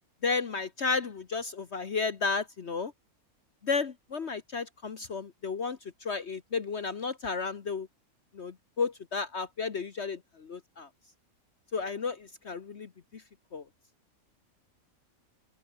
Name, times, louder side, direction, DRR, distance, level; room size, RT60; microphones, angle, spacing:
voice 1, 0.2-2.9 3.6-7.9 8.3-10.9 11.7-13.2 13.5-13.6, left 4 dB, 50° left, 1.4 m, -33 dB
open air
omnidirectional pair, 1.5 m